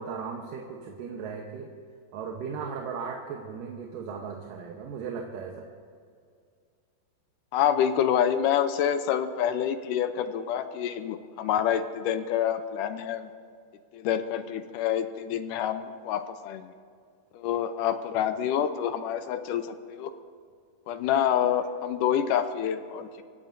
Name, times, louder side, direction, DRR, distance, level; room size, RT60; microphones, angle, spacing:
voice 1, 0.0-1.7 2.1-5.7, right 6 dB, 75° right, 1 dB, 2.6 m, -37 dB
voice 2, 7.5-13.3 13.9-16.7 17.3-20.1 20.9-23.2, left 9 dB, 75° left, 9 dB, 2.1 m, -27 dB
25.5 x 16.5 x 2.7 m, 2.2 s
omnidirectional pair, 4.1 m